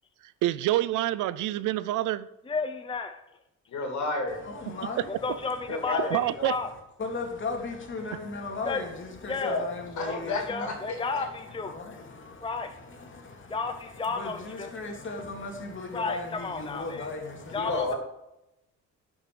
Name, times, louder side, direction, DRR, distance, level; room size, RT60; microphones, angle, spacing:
voice 1, 0.2-2.3 5.0-5.4 6.1-6.6, right 14 dB, 85° right, 0.5 m, -27 dB
voice 2, 2.5-3.2 5.2-6.7 8.6-8.8 9.3-9.6 10.1-11.7 12.4-12.7 13.5-14.7 15.9-17.1 17.5-17.9, left 4 dB, 15° left, 0.7 m, -32 dB
voice 3, 3.7-4.4 5.7-6.5 9.4-9.7 10.0-11.3 17.5-18.0, left 3 dB, 70° left, 2.8 m, -31 dB
voice 4, 4.4-5.2 5.5-5.9 7.0-10.7 11.6-17.7, left 3 dB, 40° left, 2.4 m, -37 dB
11.0 x 6.2 x 4.8 m
cardioid pair, 90°, 30 cm